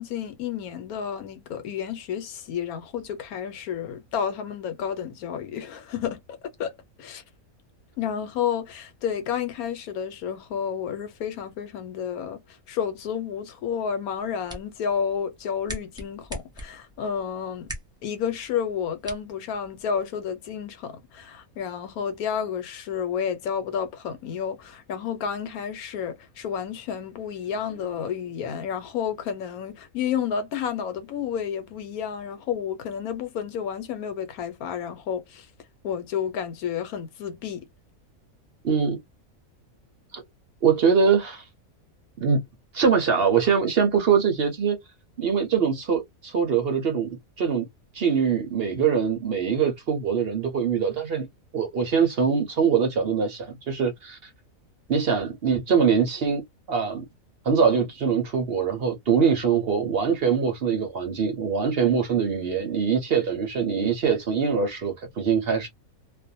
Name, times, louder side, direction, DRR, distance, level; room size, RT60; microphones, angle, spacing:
voice 1, 0.0-6.7 7.0-7.2 8.0-12.4 12.7-17.7 18.0-35.5 35.8-37.7, left 8 dB, 90° left, 1.2 m, -31 dB
sound 1, 14.1-20.1, equal, 5° right, 0.4 m, -43 dB
voice 2, 38.6-39.0 40.1-40.2 40.6-41.4 42.2-42.4 42.7-44.8 45.2-47.1 47.4-47.6 47.9-51.3 51.5-54.3 54.9-56.4 56.7-57.0 57.4-65.7, right 6 dB, 55° right, 0.7 m, -23 dB
2.5 x 2.2 x 2.6 m
omnidirectional pair, 1.5 m